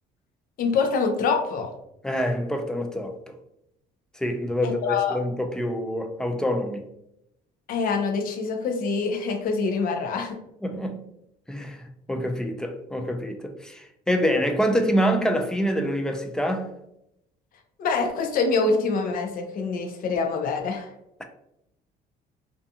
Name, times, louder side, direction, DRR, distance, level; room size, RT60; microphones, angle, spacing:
voice 1, 0.6-1.7 4.6-5.2 7.7-10.4 17.8-20.9, left 4 dB, 55° left, 0.5 m, -25 dB
voice 2, 2.0-3.3 4.1-6.8 10.6-11.0 11.5-16.7, equal, 5° left, 0.3 m, -26 dB
2.5 x 2.3 x 2.7 m
cardioid pair, 110°, 17 cm